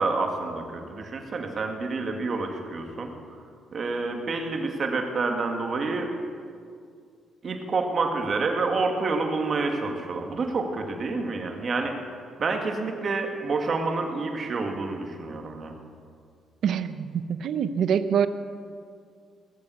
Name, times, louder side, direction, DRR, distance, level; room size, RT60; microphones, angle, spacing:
voice 1, 0.0-3.1 3.7-6.1 7.4-12.0 12.4-15.7, right 3 dB, 45° right, 3 dB, 2.1 m, -28 dB
voice 2, 16.6-18.3, right 7 dB, 70° right, 12 dB, 0.7 m, -25 dB
18.5 x 7.1 x 8.4 m, 2.2 s
cardioid pair, 90°, 0 cm